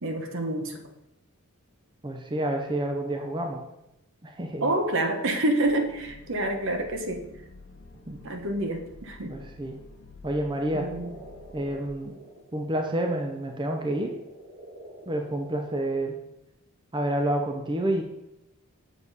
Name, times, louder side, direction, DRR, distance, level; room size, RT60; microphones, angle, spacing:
voice 1, 0.0-0.8 4.6-7.2 8.2-9.3 10.7-11.2, right 1 dB, 60° right, 5 dB, 1.1 m, -28 dB
voice 2, 2.0-3.6 4.2-4.7 8.1-8.2 9.3-9.8 10.2-10.9 11.5-12.1 12.5-14.2 15.1-16.2 16.9-18.0, right 1 dB, 20° right, 3 dB, 0.6 m, -29 dB
sound 1, 5.6-11.9, left 2 dB, 60° left, 0.8 m, -49 dB
sound 2, 10.5-13.6 13.8-15.7, right 1 dB, 45° right, 1.9 m, -47 dB
7.1 x 6.9 x 4.1 m, 0.87 s
head